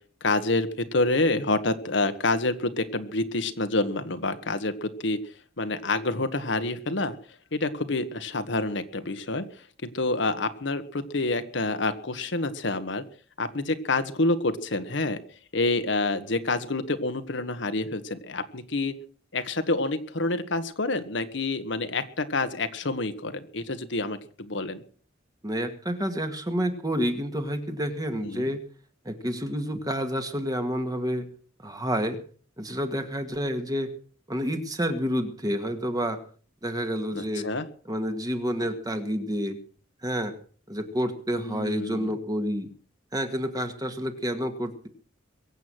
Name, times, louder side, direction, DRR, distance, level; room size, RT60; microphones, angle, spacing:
voice 1, 0.2-7.1 7.5-9.4 9.8-13.0 13.4-15.2 15.5-18.9 19.3-24.8 28.2-28.5 37.1-37.7 41.3-42.1, left 2 dB, 65° left, 9 dB, 1.5 m, -28 dB
voice 2, 25.4-28.6 29.1-31.3 31.6-32.2 32.6-33.9 34.3-36.2 36.6-37.5 37.9-39.6 40.0-40.3 40.7-42.7 43.1-44.9, equal, 20° right, 7 dB, 1.9 m, -29 dB
22.5 x 8.3 x 6.2 m, 0.43 s
head